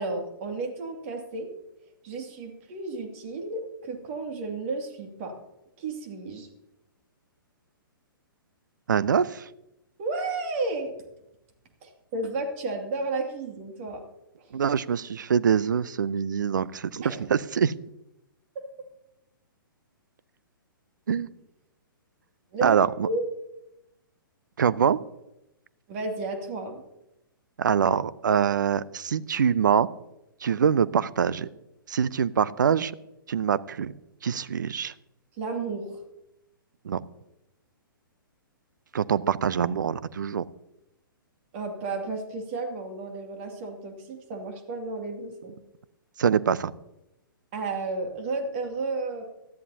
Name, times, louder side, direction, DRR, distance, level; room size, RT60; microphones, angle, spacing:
voice 1, 0.0-1.5 2.0-5.3 5.8-6.5 10.0-10.9 11.8-14.0 14.4-14.5 17.0-17.2 18.5-18.6 22.5-23.3 25.9-26.8 35.4-36.0 41.5-45.5 47.5-49.2, right 3 dB, 35° right, 3 dB, 2.4 m, -32 dB
voice 2, 8.9-9.5 14.5-17.7 21.1-21.3 22.6-23.1 24.6-25.0 27.6-29.9 30.4-31.5 31.9-32.9 33.3-33.9 34.2-34.9 36.8-37.0 38.9-40.4 46.2-46.7, right 7 dB, 60° right, 18 dB, 0.6 m, -24 dB
19.0 x 13.5 x 2.8 m, 0.88 s
figure-of-eight pair, 120°, 12 cm